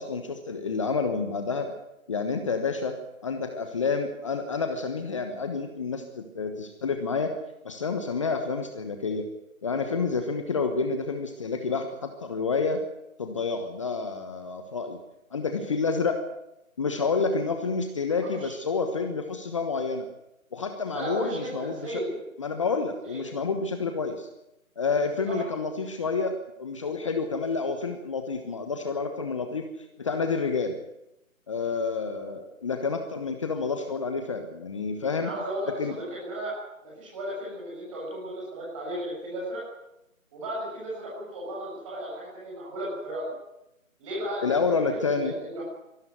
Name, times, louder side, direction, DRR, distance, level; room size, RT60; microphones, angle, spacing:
voice 1, 0.0-1.7 2.1-3.0 3.2-7.3 7.6-9.3 9.6-12.8 13.2-15.0 15.3-16.2 16.8-20.1 20.5-22.0 22.4-24.3 24.8-26.3 26.6-29.6 30.0-30.8 31.5-35.3 35.8-35.9 44.4-45.3, left 4 dB, 20° left, 6 dB, 1.2 m, -29 dB
voice 2, 18.2-18.5 20.9-22.2 23.1-23.4 25.3-25.5 31.6-31.8 35.1-36.5 36.8-39.6 40.3-43.3 44.0-45.6, right 1 dB, 25° right, -5 dB, 7.2 m, -35 dB
24.0 x 13.0 x 9.6 m, 0.88 s
figure-of-eight pair, 155°, 42 cm